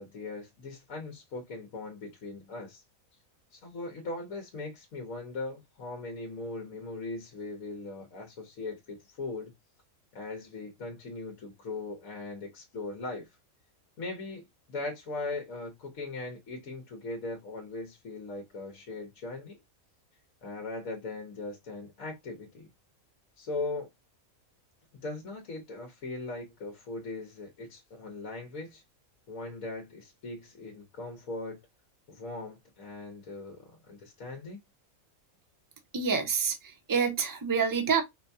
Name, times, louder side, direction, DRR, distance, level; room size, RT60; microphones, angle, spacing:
voice 1, 0.0-2.8 3.5-9.5 10.1-13.3 14.0-19.6 20.4-22.7 23.4-23.9 25.0-28.8 29.3-31.6 32.1-34.6, left 2 dB, 75° left, 1.3 m, -39 dB
voice 2, 35.9-38.0, right 6 dB, 20° right, 0.7 m, -27 dB
4.9 x 2.2 x 2.6 m
omnidirectional pair, 1.4 m